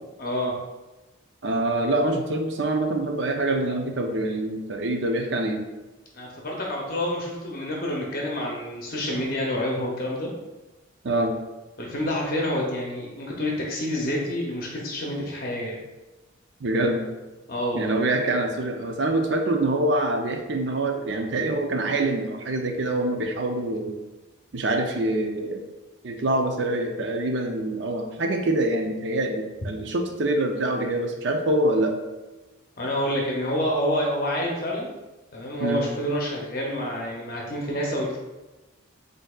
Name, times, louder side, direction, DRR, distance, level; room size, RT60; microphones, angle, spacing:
voice 1, 0.2-0.5 6.1-10.3 11.8-15.8 17.5-17.9 32.8-34.9 35.3-38.2, left 1 dB, 45° left, -2 dB, 0.7 m, -28 dB
voice 2, 1.4-5.6 11.0-11.3 16.6-17.1 17.7-23.9 24.5-25.6 26.0-31.9 35.6-35.8, right 1 dB, 60° right, 3 dB, 0.6 m, -25 dB
7.8 x 2.7 x 2.4 m, 1.1 s
head